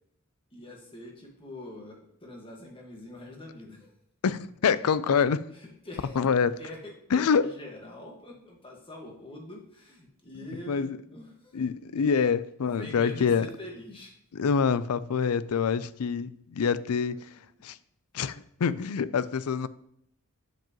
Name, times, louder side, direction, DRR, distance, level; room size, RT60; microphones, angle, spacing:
voice 1, 0.5-3.9 5.5-6.3 6.6-11.6 12.0-12.1 12.8-14.1, left 1 dB, 25° left, 1.6 m, -44 dB
voice 2, 4.2-5.4 6.2-6.6 7.1-7.5 10.7-11.0 11.5-13.5 14.3-17.2 17.6-17.8 18.1-19.7, left 6 dB, 90° left, 0.4 m, -26 dB
7.8 x 7.5 x 3.0 m
head